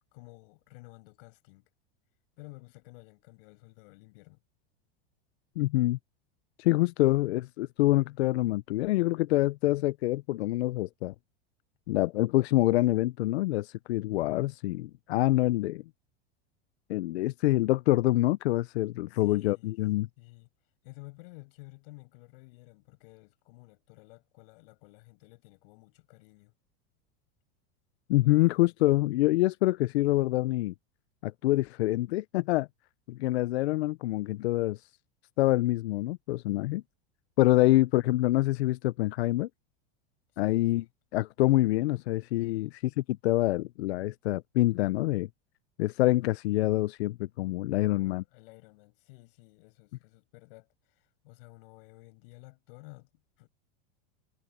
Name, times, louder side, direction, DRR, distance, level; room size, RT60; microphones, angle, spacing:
voice 1, 0.1-1.7 2.4-4.4 19.1-19.8 20.2-20.5 20.8-26.5 28.2-28.7 37.5-37.8 40.3-40.9 42.4-42.7 47.8-53.5, left 26 dB, 60° left, 6.8 m, -53 dB
voice 2, 5.6-6.0 6.6-11.1 11.9-15.8 16.9-20.1 28.1-30.7 31.2-32.7 33.1-34.8 35.4-36.8 37.4-39.5 40.4-40.8 41.1-42.7 43.1-45.3 45.8-48.2, left 17 dB, 85° left, 0.6 m, -26 dB
supercardioid pair, 135°, 31 cm